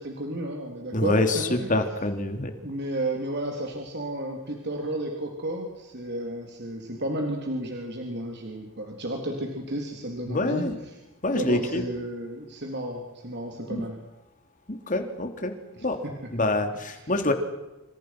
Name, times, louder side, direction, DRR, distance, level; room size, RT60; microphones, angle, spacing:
voice 1, 0.0-1.8 2.6-10.9 11.3-14.0 15.7-16.1 16.9-17.1, right 1 dB, 50° right, 1 dB, 3.7 m, -32 dB
voice 2, 0.9-2.5 10.3-10.8 11.2-11.8 13.7-13.8 14.7-16.0 16.3-17.3, left 2 dB, 35° left, 6 dB, 3.2 m, -26 dB
28.0 x 27.0 x 6.1 m, 1.0 s
head